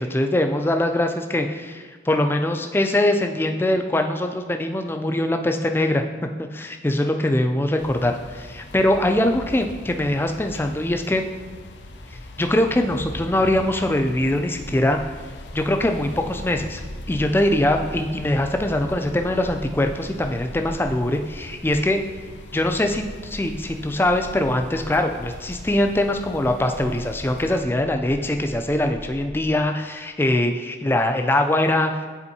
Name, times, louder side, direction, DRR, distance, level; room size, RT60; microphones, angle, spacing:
voice 1, 0.0-6.0 6.5-11.3 12.1-15.1 15.5-22.0 22.5-32.1, left 1 dB, 10° left, 5 dB, 0.3 m, -22 dB
sound 1, 7.8-27.6, left 2 dB, 75° left, 0.6 m, -41 dB
sound 2, 14.5-29.6, equal, 45° right, 1.5 m, -41 dB
9.7 x 4.3 x 2.7 m, 1.5 s
head